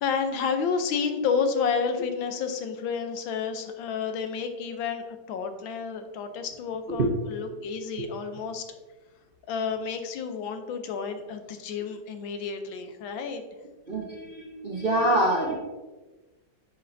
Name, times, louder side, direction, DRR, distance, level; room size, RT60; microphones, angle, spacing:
voice 1, 0.0-8.7 9.5-13.4, left 6 dB, 80° left, 7 dB, 1.5 m, -30 dB
voice 2, 13.9-15.6, right 1 dB, 50° right, -2 dB, 0.7 m, -25 dB
10.0 x 5.5 x 2.6 m, 1.2 s
omnidirectional pair, 2.2 m